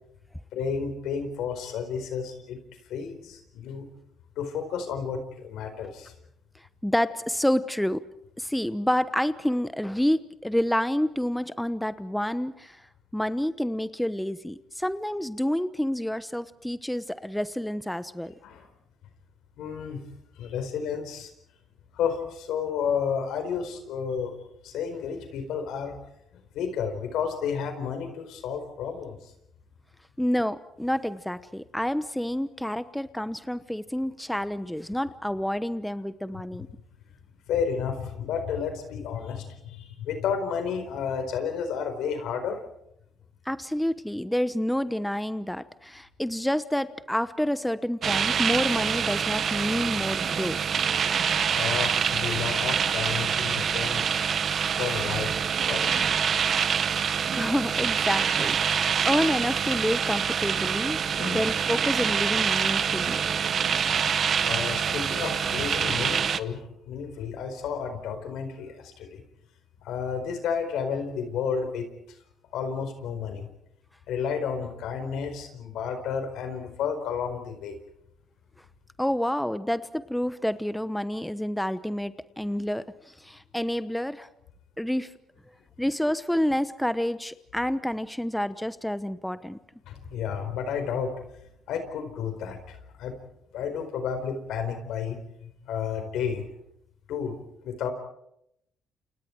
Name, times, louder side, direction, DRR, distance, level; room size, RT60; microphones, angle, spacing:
voice 1, 0.5-2.6 2.9-3.9 4.4-6.1 18.4-18.6 19.6-20.0 20.4-21.3 21.9-24.4 24.6-26.0 26.3-29.3 37.5-42.6 51.5-54.2 54.8-55.4 55.6-56.1 61.2-61.4 64.4-69.2 69.8-71.9 72.5-73.5 74.1-77.8 89.9-91.1 91.7-93.1 93.5-96.5 97.1-97.4 97.6-97.9, left 6 dB, 85° left, 8 dB, 4.5 m, -31 dB
voice 2, 6.5-8.0 8.4-12.9 13.1-18.3 30.2-36.7 43.4-50.6 56.6-56.8 57.3-63.2 79.0-84.3 84.8-85.1 85.8-89.6, equal, 5° left, 13 dB, 1.0 m, -28 dB
sound 1, 48.0-66.4, right 7 dB, 55° right, 1.0 m, -26 dB
29.5 x 29.0 x 4.7 m, 0.78 s
cardioid pair, 90°, 0 cm